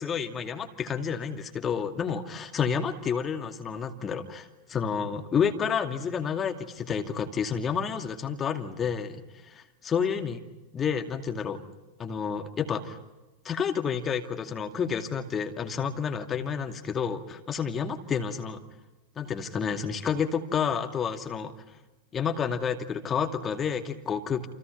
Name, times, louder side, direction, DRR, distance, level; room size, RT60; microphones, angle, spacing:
voice 1, 0.0-10.4 10.7-11.6 12.0-13.0 13.4-18.6 19.2-21.5 22.1-24.5, left 7 dB, 25° left, 5 dB, 2.5 m, -30 dB
29.5 x 28.5 x 5.7 m, 1.1 s
figure-of-eight pair, 90°, 0 cm